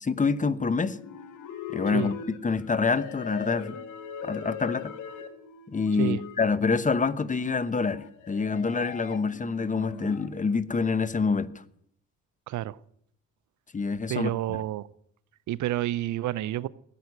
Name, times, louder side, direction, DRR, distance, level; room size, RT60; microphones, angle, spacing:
voice 1, 0.0-1.0 1.7-3.8 4.2-4.9 5.7-11.5 13.7-14.6, left 4 dB, 25° left, 0.9 m, -27 dB
sound 1, 0.9-10.3, left 8 dB, 85° left, 1.8 m, -40 dB
voice 2, 14.1-14.9 15.5-16.7, right 14 dB, 75° right, 0.6 m, -29 dB
16.0 x 7.7 x 9.5 m
cardioid pair, 90°, 30 cm